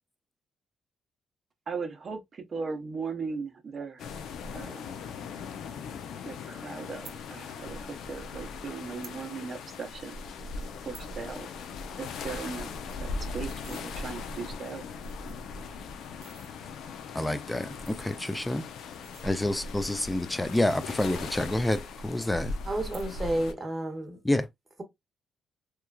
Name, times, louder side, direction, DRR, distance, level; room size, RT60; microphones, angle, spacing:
voice 1, 1.7-4.0 4.5-5.0 6.2-10.2 10.8-11.5 12.0-12.7 13.0-14.9, right 5 dB, 45° right, 0.7 m, -38 dB
sound 1, 4.0-23.5, left 4 dB, 75° left, 0.4 m, -39 dB
sound 2, 6.9-7.2 8.1-8.2 8.8-9.2 9.6-9.7 9.9-10.1 10.6-11.2 11.5-11.7 11.9-12.0 12.3-12.4 12.7-13.8 14.5-14.6 14.9-15.5 16.0-16.5 17.5-19.7 20.4-21.4 21.7-22.3 22.8-23.4 23.7-24.1, right 6 dB, 75° right, 0.9 m, -53 dB
voice 2, 17.1-18.7 19.2-22.6 24.2-24.5, left 1 dB, 10° left, 0.4 m, -28 dB
voice 3, 22.7-24.2, right 1 dB, 25° right, 1.0 m, -31 dB
3.0 x 2.3 x 2.2 m
cardioid pair, 90°, 0 cm